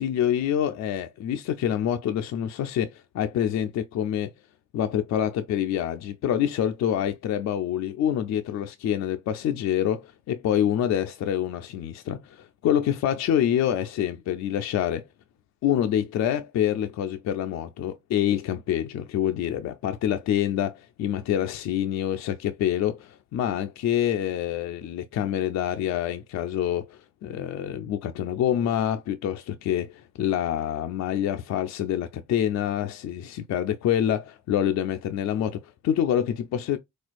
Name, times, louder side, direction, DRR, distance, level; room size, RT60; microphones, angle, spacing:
voice 1, 0.0-4.3 4.7-15.0 15.6-36.8, left 10 dB, 65° left, 0.5 m, -26 dB
4.3 x 2.3 x 2.4 m
cardioid pair, 90°, 30 cm